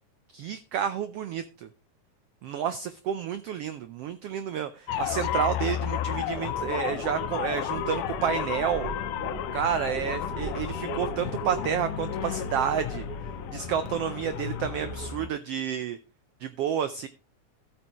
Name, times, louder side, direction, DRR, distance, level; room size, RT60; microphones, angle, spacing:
voice 1, 0.3-1.7 2.4-8.9 9.5-13.0 13.5-16.0 16.4-17.1, right 9 dB, 90° right, 11 dB, 1.3 m, -30 dB
sound 1, 4.9-15.3, left 11 dB, 85° left, 2.3 m, -32 dB
sound 2, 6.4-15.1, right 6 dB, 70° right, 2.5 m, -40 dB
13.5 x 8.7 x 3.0 m, 0.32 s
omnidirectional pair, 3.6 m